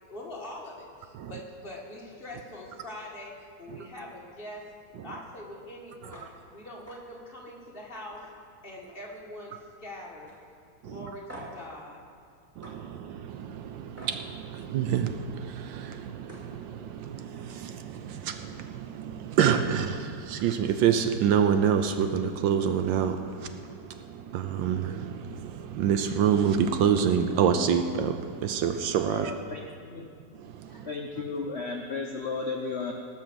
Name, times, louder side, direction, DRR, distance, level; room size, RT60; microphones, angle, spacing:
voice 1, 0.0-4.6 5.0-8.2 8.6-9.5 9.8-10.3 10.8-12.0, left 1 dB, 30° left, -3 dB, 1.7 m, -43 dB
sound 1, 6.1-6.3 6.6-7.0 7.4-7.5 8.0-9.1 9.4-9.8 10.3-10.4 11.3-11.7 12.6-12.8 14.0-14.2 15.8-15.9 16.2-16.5, right 1 dB, 5° right, 2.0 m, -46 dB
voice 2, 10.8-11.1 12.6-29.3 30.4-30.9 31.2-31.3, right 8 dB, 75° right, 8 dB, 1.3 m, -27 dB
voice 3, 29.1-30.1 30.7-32.9, left 4 dB, 60° left, 1 dB, 0.6 m, -34 dB
18.5 x 6.1 x 6.9 m, 2.3 s
omnidirectional pair, 2.2 m